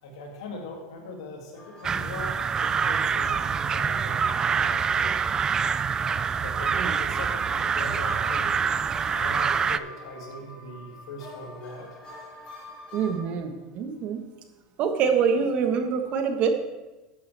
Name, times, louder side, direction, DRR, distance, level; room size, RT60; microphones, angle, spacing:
voice 1, 0.0-4.3 4.6-5.1 6.3-8.6 9.1-11.9 12.5-12.6, left 1 dB, 85° left, 0 dB, 2.5 m, -40 dB
sound 1, 1.5-13.2, left 2 dB, 35° left, 3.8 m, -44 dB
sound 2, 1.8-9.8, right 6 dB, 25° right, 0.4 m, -26 dB
voice 2, 12.9-14.2 14.8-16.5, right 6 dB, 50° right, 6 dB, 1.3 m, -25 dB
12.5 x 8.6 x 3.4 m, 1.1 s
supercardioid pair, 110°, 3 cm